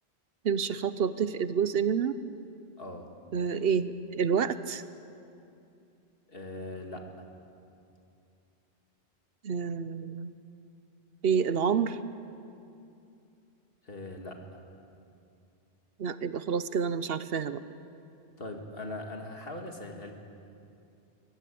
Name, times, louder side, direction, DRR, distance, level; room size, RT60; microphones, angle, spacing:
voice 1, 0.4-2.2 3.3-4.8 9.4-10.3 11.2-12.0 16.0-17.6, right 6 dB, 70° right, 13 dB, 1.0 m, -28 dB
voice 2, 2.8-3.1 6.3-7.1 13.8-14.6 18.4-20.1, left 1 dB, 60° left, 3 dB, 2.4 m, -40 dB
23.0 x 18.5 x 8.5 m, 2.6 s
omnidirectional pair, 1.1 m